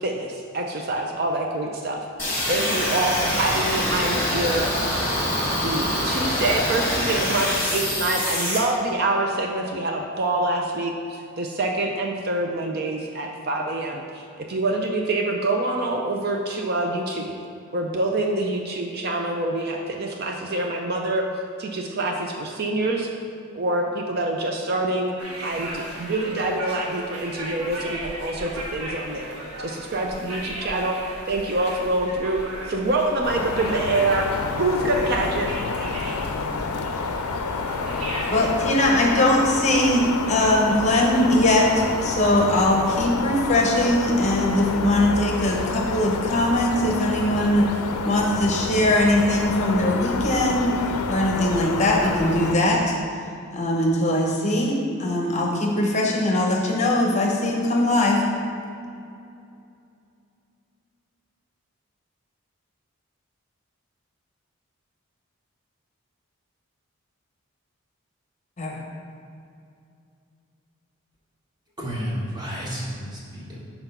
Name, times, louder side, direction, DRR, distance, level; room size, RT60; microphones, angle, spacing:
voice 1, 0.0-2.0 2.5-4.7 5.6-17.3 17.7-21.3 21.6-23.1 23.5-25.1 25.4-31.0 31.3-32.4 32.7-34.3 34.6-35.5, right 2 dB, 45° right, 2 dB, 0.4 m, -26 dB
sound 1, 2.2-8.6, left 1 dB, 10° left, 1.3 m, -25 dB
sound 2, 25.2-38.6, right 1 dB, 80° right, 1.3 m, -36 dB
sound 3, 33.2-52.6, left 4 dB, 90° left, 0.5 m, -29 dB
voice 2, 38.3-47.7 48.0-50.7 51.1-52.9 53.5-58.2 68.6-68.8, left 1 dB, 30° left, 0 dB, 0.7 m, -21 dB
voice 3, 71.8-73.6, equal, 20° right, -4 dB, 1.1 m, -31 dB
5.9 x 4.4 x 5.5 m, 2.6 s
head